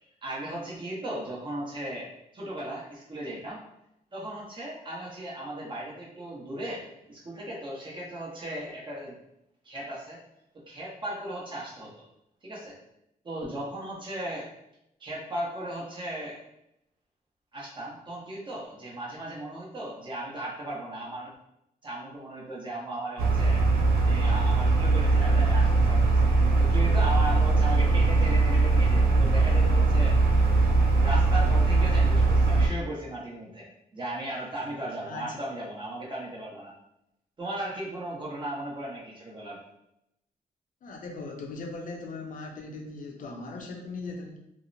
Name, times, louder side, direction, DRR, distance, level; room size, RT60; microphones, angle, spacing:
voice 1, 0.2-2.1 2.3-3.6 4.1-6.8 7.1-9.2 9.6-10.2 10.5-11.9 12.4-12.8 13.2-14.5 15.0-16.4 17.5-21.3 21.8-23.6 24.1-30.2 31.0-33.7 33.9-36.7 37.4-39.6, right 1 dB, 30° right, -5 dB, 0.9 m, -36 dB
sound 1, 23.2-32.7, right 3 dB, 80° right, 0.4 m, -21 dB
voice 2, 35.1-35.4 40.8-44.4, left 3 dB, 60° left, 1 dB, 0.5 m, -39 dB
2.7 x 2.0 x 2.6 m, 0.82 s
wide cardioid pair, 120°, 15 cm